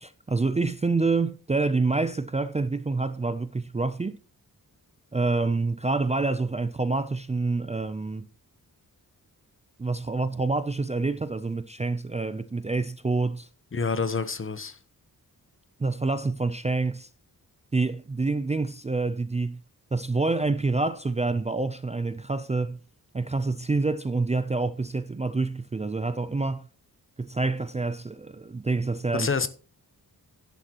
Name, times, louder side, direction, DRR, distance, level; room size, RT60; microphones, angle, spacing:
voice 1, 0.0-4.2 5.1-8.3 9.8-13.5 15.8-17.1 17.7-19.6 19.9-22.8 23.1-26.7 27.2-29.3, right 3 dB, 20° right, 0.4 m, -27 dB
voice 2, 13.7-14.8 29.1-29.5, left 5 dB, 35° left, 0.9 m, -27 dB
11.5 x 11.0 x 2.9 m
wide cardioid pair, 180°, 36 cm